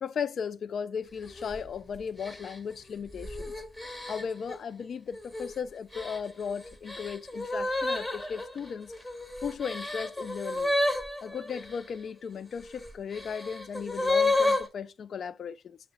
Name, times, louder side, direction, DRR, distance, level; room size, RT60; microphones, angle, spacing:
voice 1, 0.0-3.5 4.1-8.9 9.4-10.7 11.2-15.8, left 6 dB, 60° left, 0.3 m, -36 dB
sound 1, 1.2-1.6 2.2-4.6 5.1-5.5 5.9-11.8 12.6-14.7, left 2 dB, 25° left, 1.2 m, -31 dB
6.5 x 3.1 x 2.6 m
hypercardioid pair, 45°, 0 cm